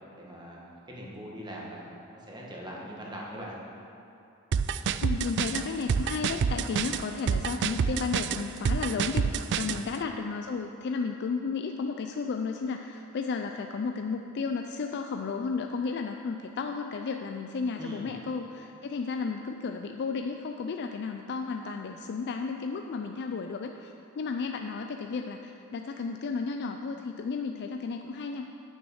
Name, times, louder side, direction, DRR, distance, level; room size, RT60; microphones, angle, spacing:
voice 1, 0.1-3.5 9.7-9.9 17.7-18.1, equal, 20° right, -4 dB, 1.5 m, -42 dB
sound 1, 4.5-9.8, right 6 dB, 55° right, 0.3 m, -28 dB
voice 2, 5.0-28.4, left 4 dB, 50° left, 4 dB, 0.4 m, -33 dB
9.0 x 6.2 x 6.3 m, 2.7 s
head